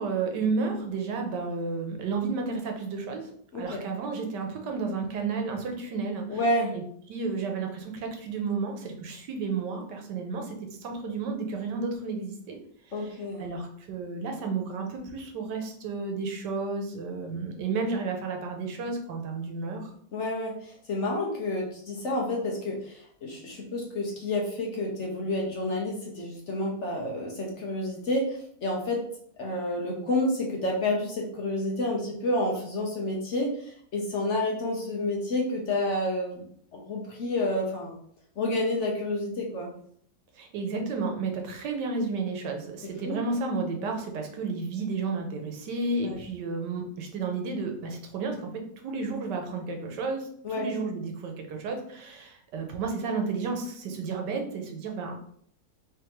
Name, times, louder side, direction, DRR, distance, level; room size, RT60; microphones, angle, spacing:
voice 1, 0.0-6.4 6.7-6.8 7.1-12.6 13.4-19.9 40.3-50.3 50.6-55.1, right 4 dB, 90° right, 3 dB, 1.4 m, -32 dB
voice 2, 3.5-3.8 6.3-6.7 12.9-13.5 20.1-29.0 29.4-36.5 36.7-37.9 38.4-39.7 43.0-43.2 46.0-46.2 50.4-50.7, left 1 dB, 55° left, -1 dB, 0.9 m, -29 dB
3.6 x 3.2 x 3.0 m, 0.63 s
omnidirectional pair, 1.8 m